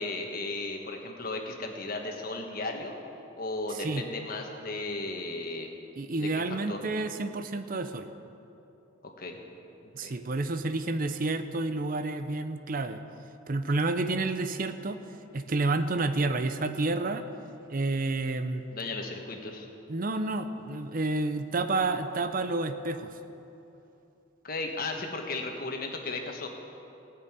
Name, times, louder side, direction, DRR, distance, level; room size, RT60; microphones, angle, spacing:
voice 1, 0.0-3.0 3.4-5.7 6.2-6.8 9.2-9.4 9.8-10.2 18.7-19.7 24.4-26.5, left 2 dB, 45° left, 2 dB, 1.4 m, -35 dB
voice 2, 6.0-8.1 9.9-13.0 13.5-15.0 15.3-17.3 17.7-18.6 19.9-23.1, right 2 dB, 45° right, 9 dB, 0.6 m, -29 dB
15.0 x 6.8 x 8.9 m, 2.9 s
head